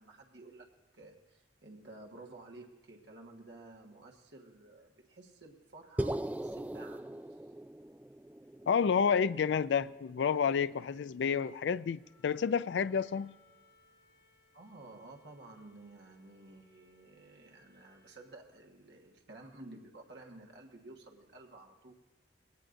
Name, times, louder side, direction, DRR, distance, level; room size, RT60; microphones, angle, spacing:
voice 1, 0.0-7.1 14.5-21.9, right 2 dB, 75° right, 1.5 m, -53 dB
sound 1, 6.0-10.4, right 1 dB, 10° right, 0.4 m, -40 dB
voice 2, 8.7-13.3, left 6 dB, 85° left, 0.4 m, -30 dB
Wind instrument woodwind instrument, 11.9-18.3, left 2 dB, 30° left, 4.3 m, -68 dB
21.0 x 17.5 x 2.6 m
head